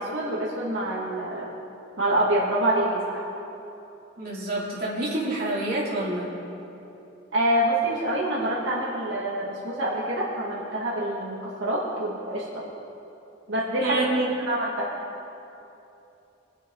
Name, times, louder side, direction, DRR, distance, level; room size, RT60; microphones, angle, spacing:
voice 1, 0.0-1.5 2.0-3.2 7.3-12.4 13.5-14.1 14.5-14.9, right 1 dB, 80° right, -6 dB, 2.1 m, -26 dB
voice 2, 4.2-6.3 13.8-14.3, right 1 dB, 50° right, -6 dB, 3.3 m, -27 dB
24.0 x 8.0 x 4.0 m, 2.9 s
head